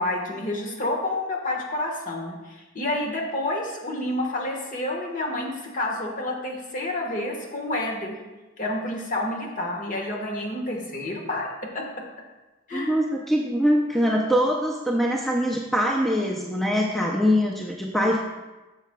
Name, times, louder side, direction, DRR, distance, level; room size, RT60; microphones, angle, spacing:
voice 1, 0.0-8.2 8.6-11.5 11.7-11.8 12.7-13.0, left 1 dB, 40° left, 0 dB, 1.3 m, -29 dB
voice 2, 12.7-18.2, equal, ahead, -1 dB, 0.5 m, -23 dB
12.0 x 6.8 x 2.2 m, 1.1 s
head